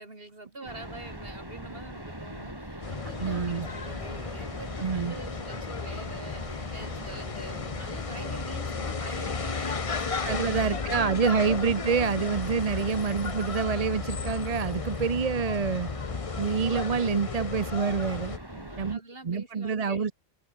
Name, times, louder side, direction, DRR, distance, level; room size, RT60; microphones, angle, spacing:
voice 1, 0.0-11.3 12.7-13.0 18.5-20.1, right 2 dB, 55° right, 4.1 m, -46 dB
sound 1, 0.7-19.0, right 1 dB, 20° right, 5.3 m, -42 dB
sound 2, 2.8-18.4, left 5 dB, 35° left, 0.9 m, -34 dB
voice 2, 3.2-3.7 4.8-5.2 10.2-15.9 16.4-18.4 18.8-19.0 19.2-20.1, right 5 dB, 35° right, 0.8 m, -27 dB
omnidirectional pair, 1.2 m